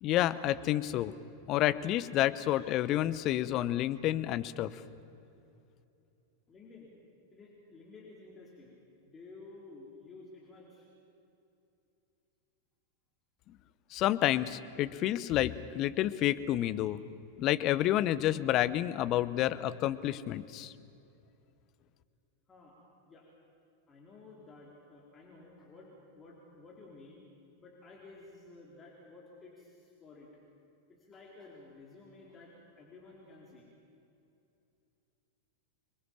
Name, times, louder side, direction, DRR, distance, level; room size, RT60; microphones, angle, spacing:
voice 1, 0.0-1.1 1.5-4.8 13.9-17.0 17.4-20.7, left 13 dB, 35° left, 14 dB, 0.8 m, -29 dB
voice 2, 6.5-6.9 7.3-10.9 22.5-22.8 23.1-23.3 23.9-27.3 27.6-30.3 30.9-33.7, left 3 dB, 20° left, -3 dB, 4.1 m, -53 dB
27.5 x 22.0 x 7.4 m, 2.8 s
figure-of-eight pair, 90°, 0 cm